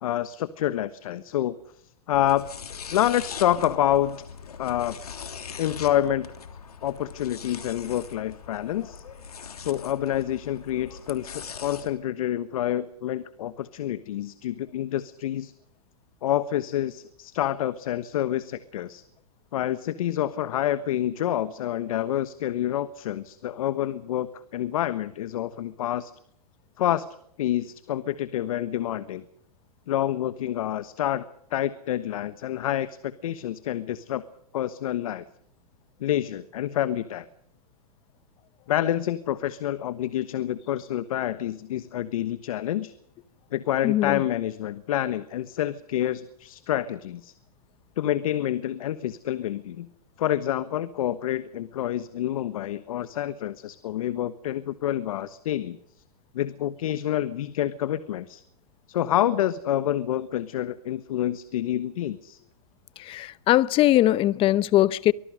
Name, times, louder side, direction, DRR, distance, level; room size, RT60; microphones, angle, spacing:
voice 1, 0.0-1.5 2.1-2.5 2.9-4.2 4.6-5.0 5.6-6.3 6.8-9.0 9.6-15.5 16.2-19.0 19.5-26.1 26.8-27.1 27.4-29.2 29.9-31.2 31.5-34.2 34.5-35.2 36.0-37.2 38.7-42.9 43.5-47.3 48.0-49.9 50.2-55.8 56.3-58.4 58.9-62.4, left 12 dB, 65° left, 14 dB, 1.3 m, -28 dB
sound 1, 2.1-11.9, left 6 dB, 90° left, 3.2 m, -41 dB
voice 2, 43.8-44.2 63.1-65.1, left 14 dB, 30° left, 20 dB, 0.8 m, -21 dB
24.5 x 20.0 x 6.4 m, 0.68 s
hypercardioid pair, 125°, 19 cm